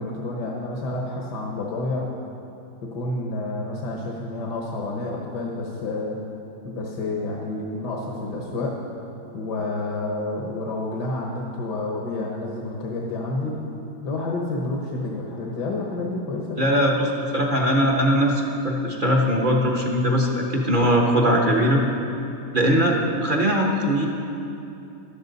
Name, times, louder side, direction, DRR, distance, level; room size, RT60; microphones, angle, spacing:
voice 1, 0.0-2.1 2.9-6.2 6.6-8.7 9.3-13.6 14.0-16.6, left 2 dB, 65° left, -1 dB, 1.7 m, -29 dB
voice 2, 16.6-21.8 22.5-24.1, equal, 35° right, -1 dB, 1.0 m, -20 dB
15.0 x 11.5 x 4.0 m, 2.8 s
omnidirectional pair, 1.9 m